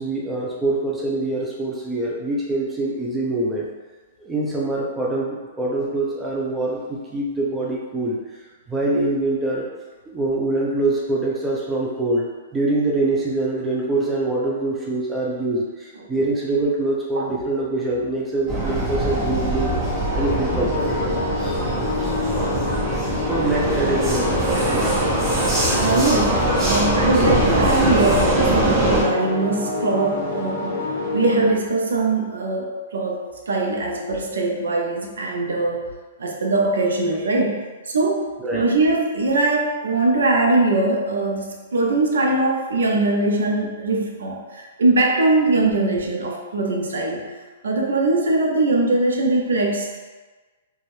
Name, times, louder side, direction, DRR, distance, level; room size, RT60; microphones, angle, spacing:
voice 1, 0.0-3.7 4.2-8.2 8.7-9.7 10.1-21.2 21.4-21.8 23.2-24.9 38.4-38.6, right 2 dB, 10° right, -4 dB, 0.5 m, -24 dB
voice 2, 15.9-16.3 17.1-17.4 25.7-35.9 36.2-47.3 47.6-50.0, right 2 dB, 85° right, 0 dB, 0.6 m, -22 dB
Vehicle, 18.5-29.0, right 2 dB, 30° right, 1.2 m, -22 dB
sound 1, 19.6-31.5, left 3 dB, 45° left, 0.7 m, -27 dB
2.5 x 2.3 x 3.2 m, 1.3 s
hypercardioid pair, 140°, 0 cm